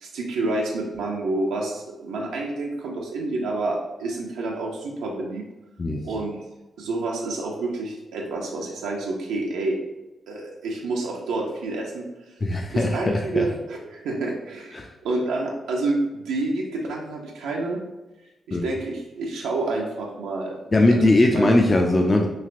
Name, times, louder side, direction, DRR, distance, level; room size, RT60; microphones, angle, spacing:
voice 1, 0.0-5.4 6.0-6.4 6.8-9.8 10.3-12.1 12.7-14.8 15.0-17.8 18.5-20.5 20.8-21.6, right 2 dB, 90° right, -1 dB, 0.4 m, -28 dB
voice 2, 12.4-13.4 14.7-14.9 18.5-18.8 20.7-22.3, left 2 dB, 35° left, 1 dB, 0.3 m, -20 dB
3.1 x 2.8 x 2.5 m, 1.1 s
supercardioid pair, 60°, 0 cm